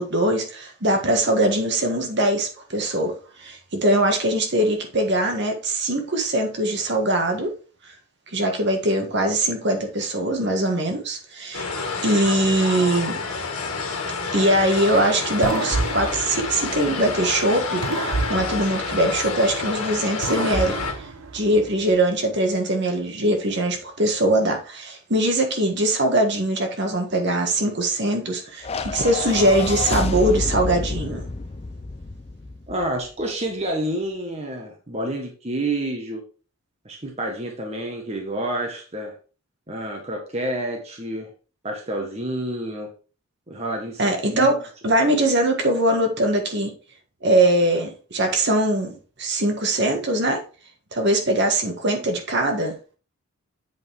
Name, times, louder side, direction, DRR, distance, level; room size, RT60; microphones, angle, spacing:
voice 1, 0.0-7.5 8.3-11.7 12.0-13.2 14.3-20.8 21.3-31.2 44.0-44.6 44.8-46.7 47.2-50.4 50.9-52.7, right 1 dB, 55° right, 1.6 m, -22 dB
sound 1, 11.5-20.9, left 4 dB, 85° left, 1.7 m, -29 dB
sound 2, 15.4-17.3 17.8-19.7 20.2-21.9, right 3 dB, 90° right, 0.9 m, -30 dB
sound 3, 28.6-33.1, left 3 dB, 30° left, 0.5 m, -29 dB
voice 2, 32.7-36.2 36.8-39.1 39.7-41.3 41.6-42.9 43.5-44.6, right 1 dB, 30° right, 1.3 m, -29 dB
8.1 x 5.3 x 3.6 m
head